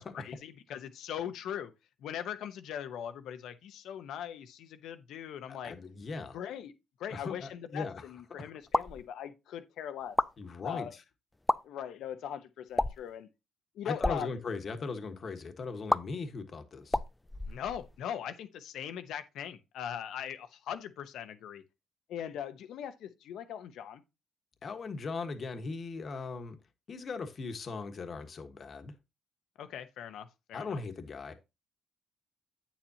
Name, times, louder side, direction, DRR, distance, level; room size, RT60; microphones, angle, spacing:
voice 1, 0.1-1.7 2.0-5.7 6.3-6.7 7.0-10.1 10.6-10.9 11.6-13.3 13.8-14.3 17.5-21.6 22.1-24.0 29.6-30.8, left 9 dB, 80° left, 0.9 m, -40 dB
voice 2, 5.5-6.4 7.1-8.0 8.3-8.5 10.4-11.0 13.8-17.0 24.6-26.6 26.9-28.9 30.5-31.3, left 4 dB, 45° left, 1.3 m, -39 dB
sound 1, 8.6-9.0 10.0-10.3 11.3-11.6 12.7-13.1 13.9-14.2 15.9-16.0 16.9-18.0, left 1 dB, 10° left, 0.4 m, -30 dB
8.6 x 7.3 x 2.8 m
cardioid pair, 90°, 0 cm